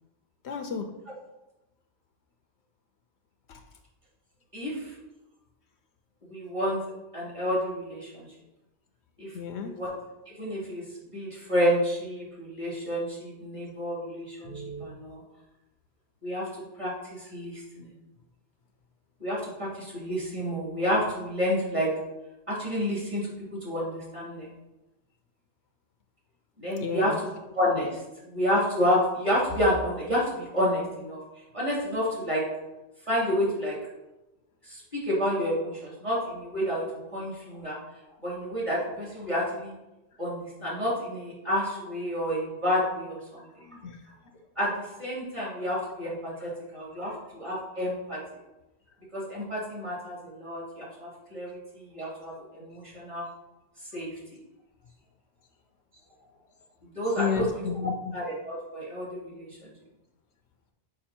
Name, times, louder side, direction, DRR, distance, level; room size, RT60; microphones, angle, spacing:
voice 1, 0.4-0.9 3.5-3.6 9.3-9.7 26.8-27.1 43.6-44.0 56.8-58.1, left 6 dB, 70° left, 6 dB, 0.9 m, -32 dB
voice 2, 4.5-5.0 6.3-6.8 7.1-8.3 9.2-9.3 9.6-9.9 10.3-15.2 16.2-16.5 16.8-17.9 19.2-21.9 22.5-23.3 23.6-24.5 26.6-27.3 27.5-31.2 31.5-32.4 33.1-33.8 34.7-37.8 38.2-39.7 40.2-43.7 44.6-48.2 49.1-53.3 53.9-54.2 56.9-57.7 58.1-59.7, equal, 25° right, -6 dB, 3.0 m, -29 dB
6.6 x 5.3 x 4.3 m, 0.99 s
omnidirectional pair, 1.2 m